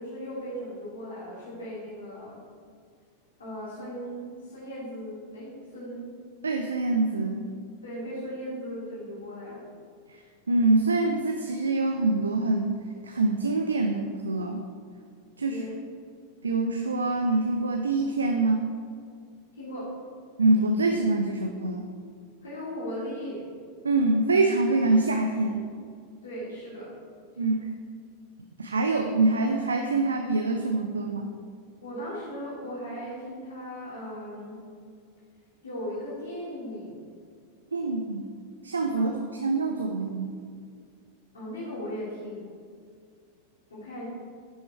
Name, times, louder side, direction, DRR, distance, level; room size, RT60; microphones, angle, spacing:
voice 1, 0.0-2.4 3.4-6.1 7.8-9.6 15.4-15.7 19.6-19.9 22.4-23.5 26.2-26.9 31.8-34.6 35.6-37.0 38.9-39.0 41.3-42.5 43.7-44.0, equal, 70° left, -7 dB, 2.6 m, -37 dB
voice 2, 6.4-7.4 10.5-12.7 13.0-14.6 15.4-15.6 16.4-18.6 20.4-21.9 23.8-25.6 27.4-27.7 28.6-31.3 37.7-38.3 38.6-39.1 39.4-40.4, right 2 dB, 75° right, 4 dB, 0.6 m, -25 dB
10.5 x 6.3 x 4.4 m, 2.2 s
figure-of-eight pair, 90°, 0 cm